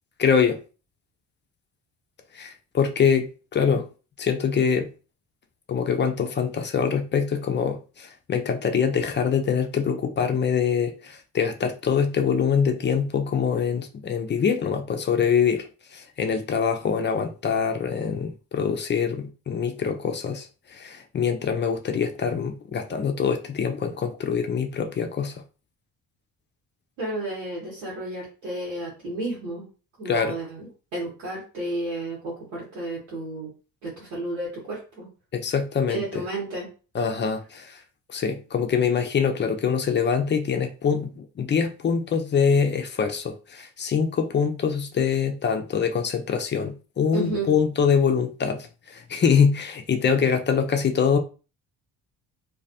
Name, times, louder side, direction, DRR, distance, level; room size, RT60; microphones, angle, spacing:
voice 1, 0.2-0.6 2.3-3.9 4.2-4.9 5.7-15.7 15.9-20.5 20.7-25.3 30.1-30.4 35.3-36.2 36.9-37.8 38.1-51.2, left 6 dB, 25° left, 0.3 m, -24 dB
voice 2, 27.0-29.7 30.0-33.5 33.8-35.1 35.9-36.7 47.1-47.5, right 2 dB, 80° right, 1.1 m, -32 dB
2.3 x 2.0 x 2.7 m
hypercardioid pair, 45°, 50 cm